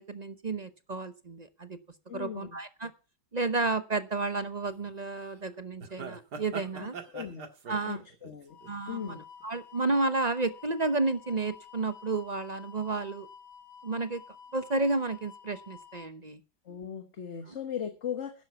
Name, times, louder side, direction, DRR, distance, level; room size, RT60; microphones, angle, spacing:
voice 1, 0.0-1.8 2.1-2.9 3.3-6.9 7.7-8.0 8.7-13.3 13.8-14.2 14.5-16.4 17.5-17.6, right 3 dB, 40° right, 12 dB, 0.6 m, -31 dB
voice 2, 2.1-2.5 7.1-7.5 7.8-8.6 8.9-9.2 16.7-18.4, left 8 dB, 40° left, 8 dB, 1.5 m, -38 dB
sound 1, 4.7-4.9 5.2-5.3 5.8-9.4 9.8-10.2 10.8-11.3 11.6-11.7, right 5 dB, 65° right, 2.2 m, -43 dB
sound 2, 8.5-16.1, left 7 dB, 70° left, 2.3 m, -51 dB
11.5 x 10.0 x 5.8 m, 0.34 s
omnidirectional pair, 1.9 m